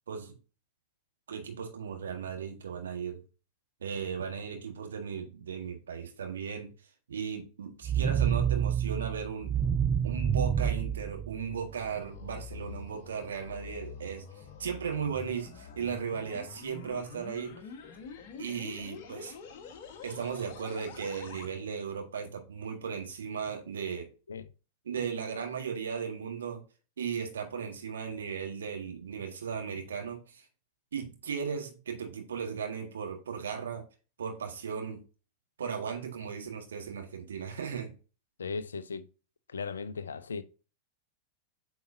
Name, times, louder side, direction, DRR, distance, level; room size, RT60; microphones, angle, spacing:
voice 1, 1.3-3.2 3.8-6.7 7.1-9.6 10.0-14.2 14.6-17.6 18.4-19.3 20.0-24.1 24.8-26.6 27.0-30.4 30.9-33.8 34.2-35.0 35.6-37.9, right 6 dB, 65° right, 1.6 m, -36 dB
sound 1, 7.8-11.9, right 8 dB, 15° right, 0.4 m, -28 dB
sound 2, 11.4-21.5, left 6 dB, 50° left, 1.2 m, -46 dB
voice 2, 38.4-39.1 39.5-40.4, left 5 dB, 70° left, 0.5 m, -37 dB
8.5 x 4.8 x 2.6 m
figure-of-eight pair, 90°, 0 cm